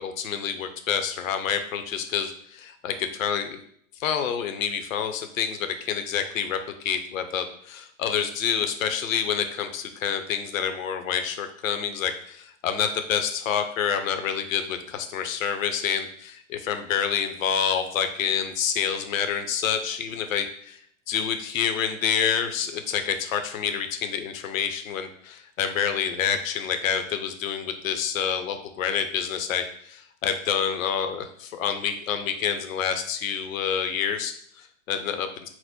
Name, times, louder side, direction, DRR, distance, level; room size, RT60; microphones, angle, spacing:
voice 1, 0.0-3.6 4.0-20.8 21.1-35.5, left 8 dB, 70° left, 8 dB, 0.7 m, -28 dB
4.4 x 2.1 x 4.2 m, 0.63 s
hypercardioid pair, 135°, 41 cm